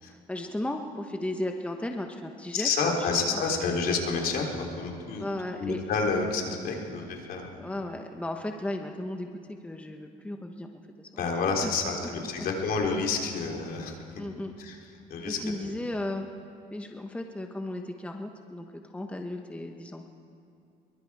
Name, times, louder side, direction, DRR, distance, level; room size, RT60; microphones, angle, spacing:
voice 1, 0.1-3.7 5.2-5.8 7.6-11.3 11.6-11.7 14.2-14.5 15.3-16.3 16.7-20.1, left 1 dB, 5° left, 4 dB, 1.2 m, -35 dB
voice 2, 2.5-5.3 5.6-7.6 11.2-14.0 14.6-14.8 15.1-15.5, left 4 dB, 60° left, 1 dB, 3.6 m, -29 dB
24.0 x 23.0 x 4.8 m, 2.5 s
cardioid pair, 110°, 17 cm